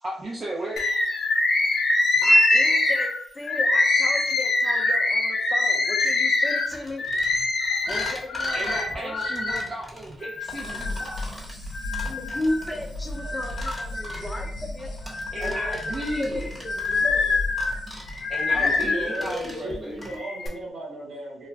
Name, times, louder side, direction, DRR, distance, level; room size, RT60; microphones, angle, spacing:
voice 1, 0.0-1.7 2.1-2.2 7.8-7.9 8.5-11.7 15.3-16.5 18.3-20.0, right 1 dB, 40° right, -5 dB, 0.6 m, -35 dB
Bird, 0.8-9.7 10.2-11.2 11.7-12.7 13.2-14.5 15.0-19.3 20.0-20.5, left 2 dB, 65° left, 0.5 m, -24 dB
voice 2, 2.2-7.0 7.9-9.6 12.0-14.9 15.4-17.4 18.5-19.8 20.1-20.2, left 1 dB, 20° left, 1 dB, 0.6 m, -35 dB
sound 1, 6.7-20.2, equal, 10° right, 1.1 m, -42 dB
sound 2, 10.4-19.1, left 1 dB, 90° left, 0.8 m, -37 dB
voice 3, 12.9-13.4 18.5-21.5, right 1 dB, 70° right, -3 dB, 1.3 m, -37 dB
2.4 x 2.1 x 3.4 m, 0.65 s
cardioid pair, 70°, 0 cm